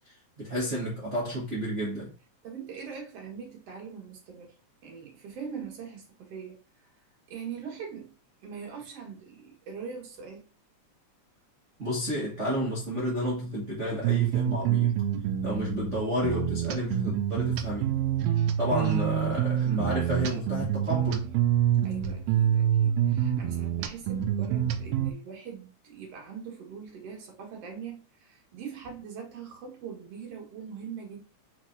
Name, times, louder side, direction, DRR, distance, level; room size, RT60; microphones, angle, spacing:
voice 1, 0.4-2.1 11.8-14.9 15.4-17.9 18.6-21.3, equal, 40° right, 1.1 m, -31 dB
voice 2, 2.4-4.5 4.8-6.6 7.3-8.1 8.4-10.5 21.8-31.2, right 6 dB, 60° right, 2.3 m, -42 dB
sound 1, 14.0-25.1, right 10 dB, 80° right, 1.7 m, -27 dB
4.4 x 4.2 x 2.6 m
omnidirectional pair, 3.3 m